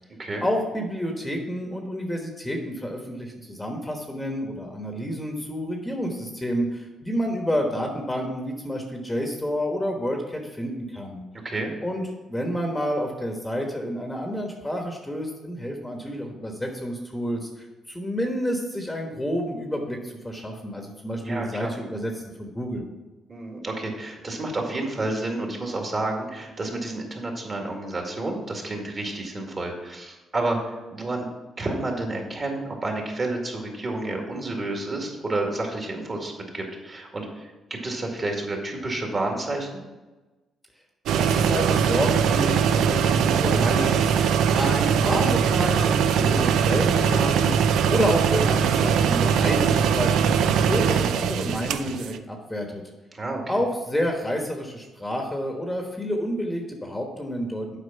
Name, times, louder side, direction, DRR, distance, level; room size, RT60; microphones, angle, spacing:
voice 1, 0.4-11.2 11.8-12.0 12.3-22.1 22.4-22.8 41.2-52.8 53.5-57.8, equal, 10° left, 2 dB, 1.2 m, -29 dB
voice 2, 21.2-21.7 23.3-31.3 31.6-39.8 53.1-53.4, right 2 dB, 35° right, 1 dB, 2.1 m, -30 dB
sound 1, 41.1-52.2, right 7 dB, 80° right, 0.4 m, -21 dB
8.2 x 4.9 x 5.6 m, 1.2 s
cardioid pair, 90°, 0 cm